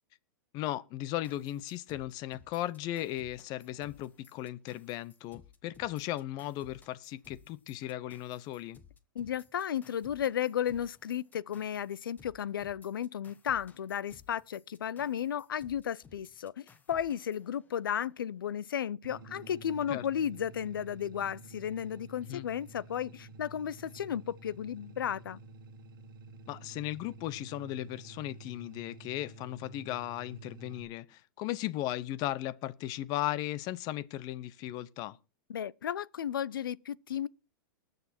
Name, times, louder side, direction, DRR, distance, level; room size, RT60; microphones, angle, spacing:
voice 1, 0.5-8.8 19.9-20.1 22.3-22.5 26.5-35.2, left 14 dB, 40° left, 0.8 m, -36 dB
sound 1, 1.2-18.1, left 6 dB, 15° left, 1.2 m, -59 dB
voice 2, 9.2-25.4 35.5-37.3, left 9 dB, 90° left, 0.6 m, -34 dB
sound 2, 19.0-30.8, right 2 dB, 85° right, 1.5 m, -51 dB
20.0 x 6.7 x 4.4 m
hypercardioid pair, 130°, 11 cm